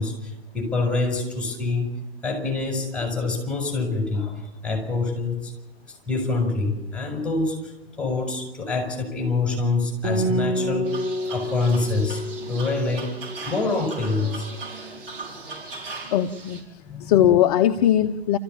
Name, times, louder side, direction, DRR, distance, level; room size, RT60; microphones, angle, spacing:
voice 1, 0.0-1.9 2.2-5.5 6.1-11.0 11.3-12.2 12.5-13.1 13.5-14.5 16.8-17.3, left 3 dB, 5° left, 2 dB, 7.1 m, -26 dB
Acoustic guitar, 10.0-13.8, equal, 15° right, 5.9 m, -28 dB
sound 1, 10.8-16.6, right 4 dB, 55° right, 6.3 m, -38 dB
voice 2, 16.1-16.7 17.0-18.4, left 11 dB, 40° left, 8 dB, 0.9 m, -19 dB
29.0 x 15.0 x 7.3 m, 0.97 s
figure-of-eight pair, 120°, 32 cm